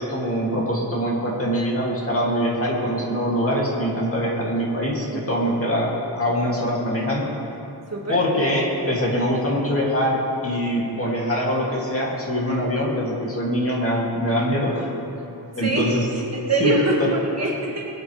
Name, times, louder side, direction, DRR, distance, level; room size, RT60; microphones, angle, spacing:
voice 1, 0.0-7.3 8.1-14.9 15.5-16.0 16.6-16.7 17.0-17.1, equal, 30° left, -4 dB, 2.4 m, -23 dB
voice 2, 7.9-8.2 15.6-17.9, right 2 dB, 35° right, -2 dB, 1.8 m, -24 dB
22.0 x 9.3 x 3.3 m, 2.9 s
wide cardioid pair, 155°, 44 cm